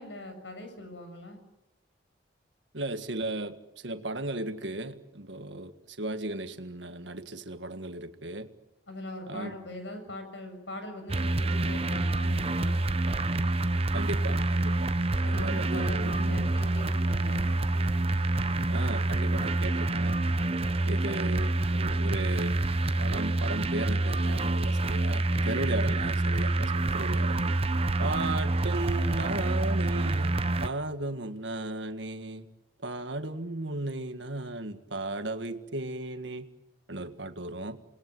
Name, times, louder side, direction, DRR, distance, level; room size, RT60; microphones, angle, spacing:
voice 1, 0.0-1.4 8.9-12.8 15.2-17.5 27.9-28.1 29.9-30.1, left 1 dB, 75° left, 7 dB, 7.0 m, -41 dB
voice 2, 2.7-8.5 9.3-9.6 13.9-14.9 15.2-16.5 18.7-20.2 20.9-22.6 23.0-27.4 28.0-32.5 32.8-36.5 36.9-37.8, right 2 dB, 70° right, 9 dB, 1.7 m, -35 dB
sound 1, 11.1-30.7, right 2 dB, 30° right, 0.9 m, -27 dB
28.0 x 20.5 x 7.9 m, 0.92 s
head